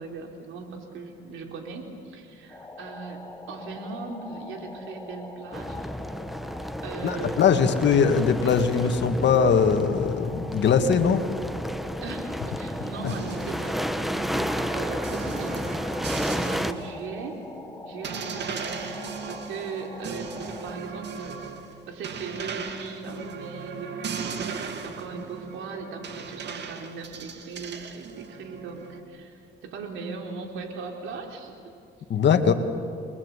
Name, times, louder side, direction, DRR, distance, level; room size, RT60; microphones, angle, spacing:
voice 1, 0.0-5.8 6.8-7.9 12.0-15.7 16.1-17.4 17.8-20.3 20.6-21.4 21.9-24.5 24.8-31.5, right 4 dB, 85° right, 2 dB, 3.8 m, -38 dB
sound 1, 2.5-20.8, left 2 dB, 15° left, 2.3 m, -42 dB
sound 2, 5.5-16.7, equal, ahead, 1.1 m, -32 dB
voice 2, 7.0-11.2 32.1-32.5, left 6 dB, 65° left, 7 dB, 2.0 m, -21 dB
sound 3, 13.1-16.9 17.3-17.4 18.0-29.0, right 6 dB, 60° right, 2.4 m, -38 dB
29.0 x 22.0 x 8.4 m, 2.4 s
cardioid pair, 90°, 20 cm